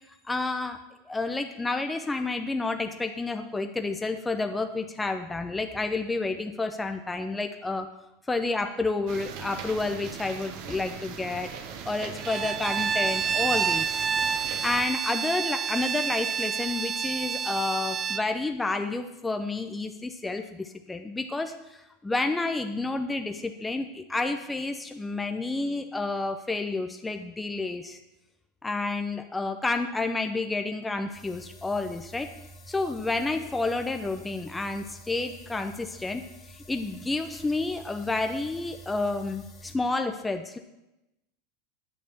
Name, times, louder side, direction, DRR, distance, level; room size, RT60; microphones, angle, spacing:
voice 1, 0.2-0.8 1.1-7.9 8.3-11.5 11.8-14.1 14.6-28.0 28.6-32.3 32.7-40.6, left 3 dB, 10° left, 6 dB, 0.8 m, -30 dB
sound 1, 9.1-14.9, right 7 dB, 55° right, 1.3 m, -40 dB
Bowed string instrument, 12.2-18.3, right 7 dB, 30° right, 0.4 m, -29 dB
sound 2, 31.1-39.8, equal, 35° left, 2.5 m, -48 dB
9.3 x 6.5 x 7.1 m, 0.94 s
hypercardioid pair, 90°, 0 cm